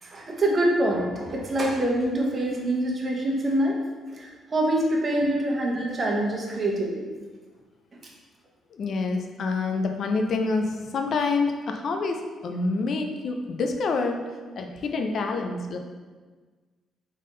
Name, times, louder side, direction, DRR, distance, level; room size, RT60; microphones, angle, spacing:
voice 1, 0.0-3.8 4.1-7.1, right 1 dB, 35° right, -1 dB, 1.0 m, -25 dB
voice 2, 8.7-14.2 14.6-15.8, left 3 dB, 60° left, 4 dB, 0.5 m, -27 dB
3.7 x 3.6 x 3.8 m, 1.4 s
cardioid pair, 90°, 0 cm